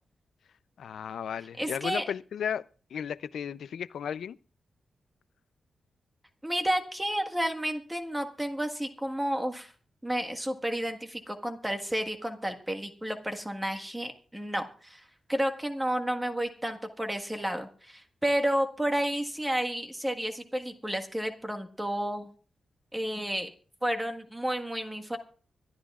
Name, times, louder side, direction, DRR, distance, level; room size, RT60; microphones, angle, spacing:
voice 1, 0.8-2.7 2.9-4.4, left 8 dB, 80° left, 0.5 m, -34 dB
voice 2, 1.6-2.0 6.4-9.7 10.0-22.3 22.9-23.5 23.8-25.2, right 1 dB, 5° right, 1.6 m, -31 dB
24.5 x 12.5 x 2.4 m
wide cardioid pair, 170°, 0 cm